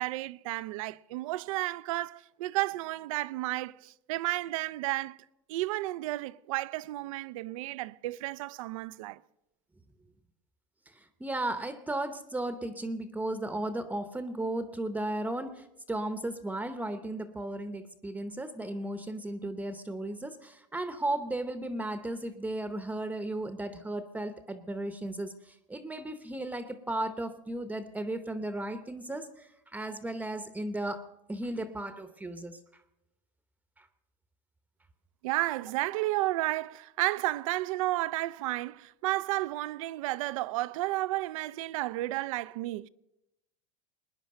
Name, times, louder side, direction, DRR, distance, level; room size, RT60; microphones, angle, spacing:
voice 1, 0.0-5.2 5.5-9.2 35.2-42.9, right 18 dB, 80° right, 0.5 m, -32 dB
voice 2, 10.9-31.0 31.3-32.6 33.8-33.9, right 1 dB, 10° right, 0.8 m, -35 dB
20.0 x 9.9 x 6.6 m
supercardioid pair, 120°, 17 cm